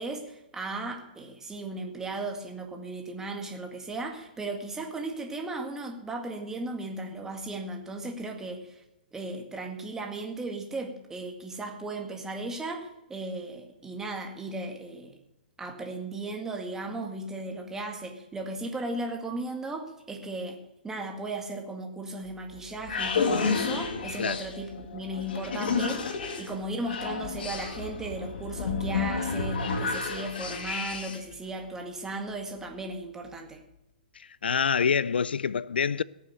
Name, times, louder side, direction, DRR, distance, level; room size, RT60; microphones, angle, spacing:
voice 1, 0.0-8.8 9.1-15.2 15.6-26.0 26.4-33.6, right 2 dB, 10° right, 2.0 m, -36 dB
sound 1, 22.3-31.3, left 5 dB, 70° left, 2.3 m, -31 dB
voice 2, 34.2-36.0, left 6 dB, 90° left, 0.4 m, -26 dB
17.5 x 7.0 x 7.9 m
hypercardioid pair, 140°, 5 cm